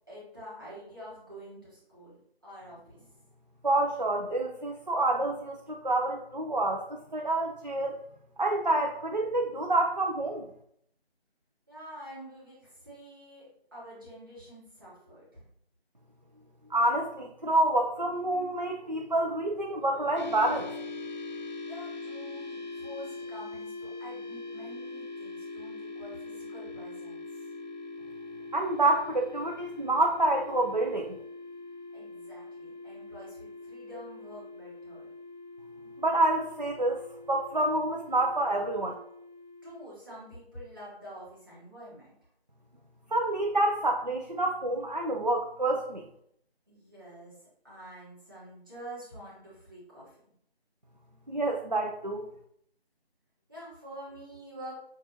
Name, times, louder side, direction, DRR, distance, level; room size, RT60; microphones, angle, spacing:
voice 1, 0.1-3.0 11.7-15.4 21.7-27.2 31.9-35.1 39.6-42.2 46.7-47.4 47.6-50.2 53.5-54.7, equal, 20° right, -8 dB, 1.2 m, -47 dB
voice 2, 3.6-8.0 8.4-10.5 16.7-20.7 28.5-31.2 36.0-37.0 37.3-38.9 43.1-46.0 51.3-52.3, right 2 dB, 45° right, 0 dB, 0.4 m, -28 dB
sound 1, 20.2-39.9, left 3 dB, 45° left, 0.5 m, -42 dB
5.7 x 2.3 x 2.8 m, 0.69 s
figure-of-eight pair, 165°, 31 cm